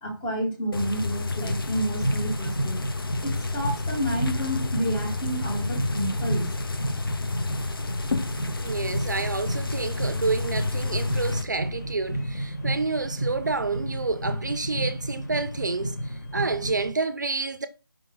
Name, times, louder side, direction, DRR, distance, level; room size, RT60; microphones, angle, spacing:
voice 1, 0.0-2.8 3.2-6.5, right 1 dB, 5° left, 0.7 m, -30 dB
sound 1, 0.7-11.4, left 3 dB, 65° left, 0.8 m, -31 dB
sound 2, 1.3-16.9, right 1 dB, 45° left, 1.6 m, -32 dB
voice 2, 8.6-17.7, right 4 dB, 50° right, 0.5 m, -29 dB
4.7 x 3.1 x 3.6 m
figure-of-eight pair, 165°, 13 cm